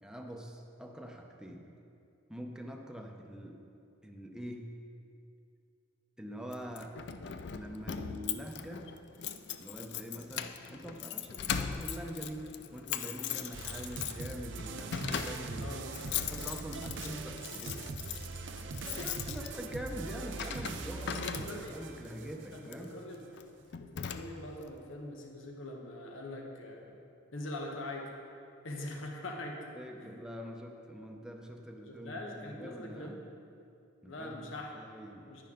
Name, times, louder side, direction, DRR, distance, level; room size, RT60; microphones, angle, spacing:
voice 1, 0.0-1.7 2.3-3.6 4.0-4.7 6.2-7.0 7.5-8.9 9.6-17.8 18.8-23.0 29.7-33.3 34.0-35.3, equal, 5° right, 2 dB, 0.7 m, -44 dB
Keys jangling, 6.5-21.9 22.6-22.9 23.4-23.5 23.7-24.6, left 8 dB, 60° left, 0.4 m, -40 dB
sound 1, 13.5-22.6, right 4 dB, 65° right, 0.6 m, -42 dB
voice 2, 15.6-16.3 16.8-16.9 18.4-18.6 19.0-19.1 21.3-23.3 23.8-27.0 27.3-28.1 28.6-29.6 30.0-30.1 31.8-33.1 34.0-34.8 35.3-35.4, left 1 dB, 80° left, 1 dB, 1.2 m, -43 dB
10.5 x 10.0 x 3.8 m, 2.5 s
head